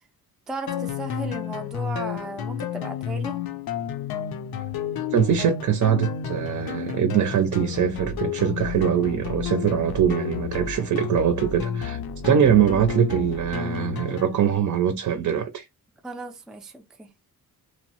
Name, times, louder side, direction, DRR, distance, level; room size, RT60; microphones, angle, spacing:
voice 1, 0.5-3.4 16.0-17.1, right 2 dB, ahead, 0.4 m, -35 dB
sound 1, 0.7-14.4, left 7 dB, 80° left, 0.6 m, -31 dB
voice 2, 5.1-15.7, right 8 dB, 55° right, 0.5 m, -22 dB
2.9 x 2.0 x 2.9 m
wide cardioid pair, 135°, 36 cm